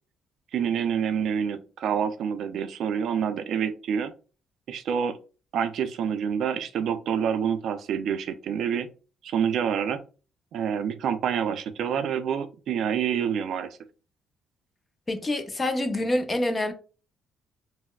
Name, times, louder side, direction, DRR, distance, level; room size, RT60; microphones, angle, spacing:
voice 1, 0.5-4.1 4.7-5.2 5.5-8.9 9.2-10.0 10.5-13.8, right 8 dB, 70° right, 0.4 m, -27 dB
voice 2, 15.1-16.7, left 1 dB, 25° left, 0.5 m, -26 dB
4.1 x 2.0 x 2.3 m
cardioid pair, 100°, 0 cm